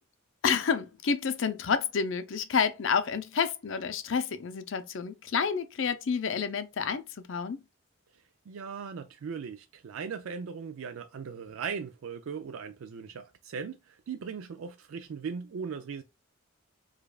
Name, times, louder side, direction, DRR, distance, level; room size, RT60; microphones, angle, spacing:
voice 1, 0.4-7.6, left 6 dB, 65° left, 0.5 m, -29 dB
voice 2, 8.1-16.0, right 6 dB, 75° right, 0.4 m, -39 dB
4.9 x 2.4 x 2.3 m
head